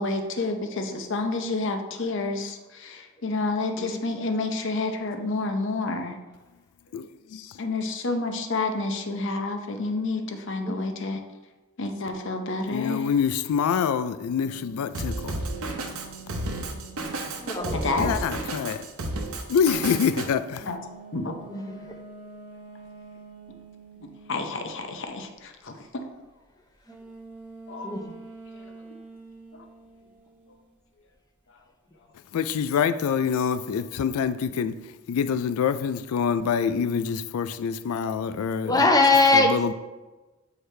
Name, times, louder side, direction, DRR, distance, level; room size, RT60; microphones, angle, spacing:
voice 1, 0.0-6.2 7.6-11.2 11.8-13.1 17.7-18.1 20.7-20.8 21.1-21.4 24.3-26.2 27.7-28.0 28.6-28.7 29.5-29.6, left 3 dB, 60° left, 5 dB, 0.7 m, -29 dB
voice 2, 6.9-7.6 12.7-15.5 18.0-18.9 19.5-20.7 32.3-38.9 39.3-39.7, left 7 dB, 90° left, 12 dB, 0.3 m, -26 dB
sound 1, 14.4-18.3 20.6-24.9 26.9-30.7, right 3 dB, 10° right, 1.1 m, -46 dB
Drum kit, 14.9-20.3, right 2 dB, 75° right, 0.9 m, -32 dB
voice 3, 17.4-18.0 21.5-22.0 27.8-28.1 38.6-39.5, left 3 dB, 15° left, 4 dB, 0.7 m, -22 dB
8.0 x 4.8 x 3.3 m, 1.1 s
head